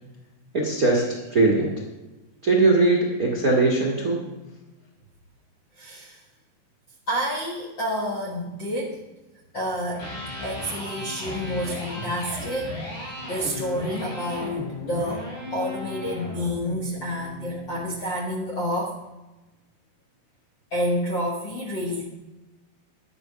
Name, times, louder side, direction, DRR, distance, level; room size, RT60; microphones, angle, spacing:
voice 1, 0.5-1.0 1.3-1.7 2.4-4.2, right 3 dB, 75° right, -1 dB, 0.8 m, -20 dB
voice 2, 5.8-6.2 7.1-9.0 9.5-10.1 10.4-19.0 20.7-22.0, equal, 85° left, 0 dB, 1.0 m, -29 dB
Electric guitar, 9.8-17.9, left 2 dB, 55° left, 6.6 m, -35 dB
12.0 x 9.7 x 5.8 m, 1.1 s
omnidirectional pair, 4.7 m